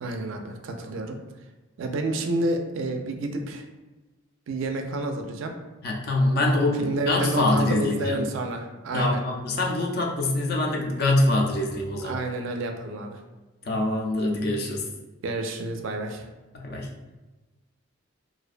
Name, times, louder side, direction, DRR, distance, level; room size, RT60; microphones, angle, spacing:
voice 1, 0.0-1.2 1.8-3.6 4.5-5.5 6.8-9.2 12.0-13.2 15.2-16.2, right 2 dB, 65° right, 4 dB, 0.3 m, -29 dB
voice 2, 5.8-8.3 8.9-12.3 13.6-14.9 16.5-16.9, left 2 dB, 45° left, 0 dB, 0.4 m, -24 dB
2.4 x 2.1 x 2.4 m, 1.1 s
head